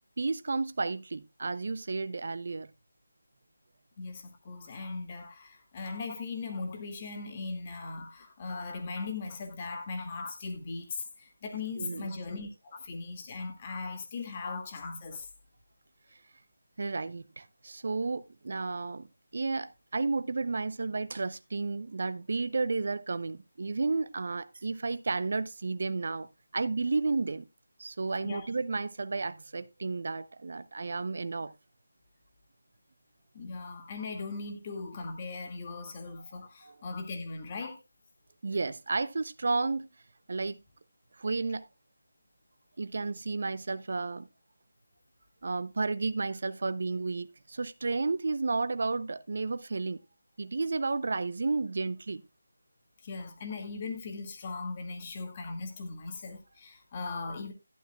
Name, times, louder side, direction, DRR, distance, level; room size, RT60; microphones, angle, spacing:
voice 1, 0.2-2.7 11.8-12.1 16.8-19.1 19.3-26.3 26.5-27.5 27.8-31.5 36.6-36.8 38.4-39.9 40.3-40.6 41.2-41.7 42.8-44.3 45.4-50.0 50.4-52.2, right 3 dB, 55° right, 0.6 m, -32 dB
voice 2, 4.0-15.3 28.2-28.5 33.3-37.8 53.0-57.5, left 4 dB, 25° left, 2.0 m, -39 dB
12.0 x 11.0 x 2.3 m
figure-of-eight pair, 165°, 0 cm